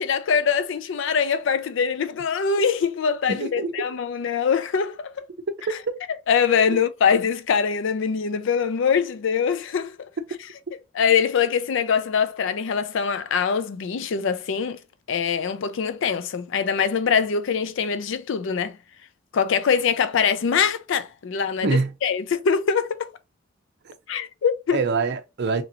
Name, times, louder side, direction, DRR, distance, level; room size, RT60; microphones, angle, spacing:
voice 1, 0.0-5.2 6.3-10.1 10.9-14.8 15.1-18.8 19.3-21.7 22.0-23.1 24.1-24.8, left 6 dB, 65° left, 0.4 m, -23 dB
voice 2, 3.3-3.9 5.5-6.0 6.7-6.8 21.6-21.9 23.8-23.9 24.7-25.6, right 4 dB, 55° right, 0.5 m, -25 dB
2.9 x 2.7 x 2.6 m
head